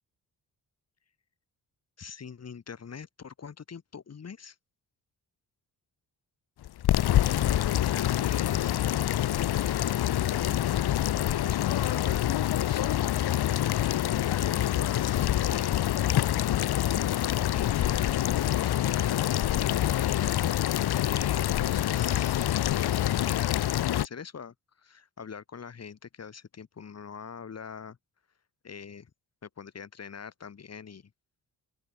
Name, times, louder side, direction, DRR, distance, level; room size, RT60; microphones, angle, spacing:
voice 1, 2.0-4.6 7.2-10.5 11.1-13.0 13.7-15.9 16.9-20.7 21.0-23.6 24.0-28.0 28.6-29.1 29.4-31.1, left 6 dB, 40° left, 2.4 m, -44 dB
sound 1, 6.6-24.1, left 12 dB, 85° left, 1.4 m, -26 dB
open air
cardioid pair, 105°, 38 cm